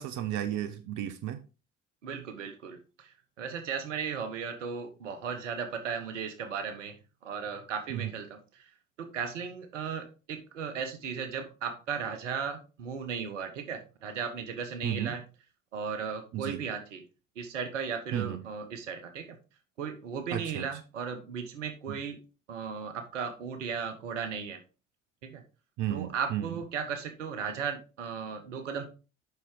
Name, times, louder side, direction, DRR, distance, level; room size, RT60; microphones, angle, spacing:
voice 1, 0.0-1.4 7.9-8.1 14.8-15.1 16.3-16.6 18.1-18.4 20.3-20.7 21.9-22.0 25.8-26.5, right 12 dB, 55° right, 0.8 m, -33 dB
voice 2, 2.0-7.0 7.2-8.7 9.0-15.2 15.7-17.0 17.3-19.3 19.8-22.2 22.5-24.6 25.2-25.4 25.9-28.9, right 6 dB, 80° right, 1.2 m, -36 dB
7.6 x 5.8 x 3.7 m
figure-of-eight pair, 55°, 36 cm